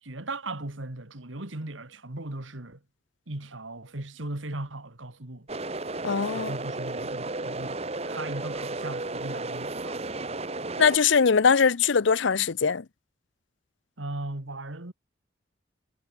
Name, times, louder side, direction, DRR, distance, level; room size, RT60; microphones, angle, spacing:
voice 1, 0.0-2.8 3.3-5.5 6.3-7.8 8.1-10.1 14.0-14.9, right 2 dB, 80° right, 2.3 m, -37 dB
sound 1, 5.5-11.0, right 2 dB, 30° right, 1.3 m, -33 dB
voice 2, 6.0-6.5 10.8-12.8, left 5 dB, 70° left, 0.6 m, -21 dB
head